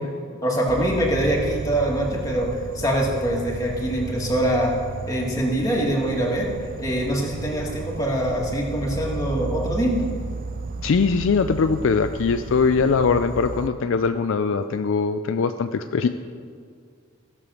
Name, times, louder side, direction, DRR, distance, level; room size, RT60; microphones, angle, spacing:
voice 1, 0.4-4.8 5.1-6.5 6.8-10.1, right 1 dB, 15° left, -2 dB, 1.8 m, -24 dB
Insect, 0.7-13.7, right 3 dB, 40° right, 0.3 m, -34 dB
voice 2, 10.8-16.1, left 5 dB, 60° left, 9 dB, 0.4 m, -21 dB
16.0 x 6.9 x 6.2 m, 2.2 s
head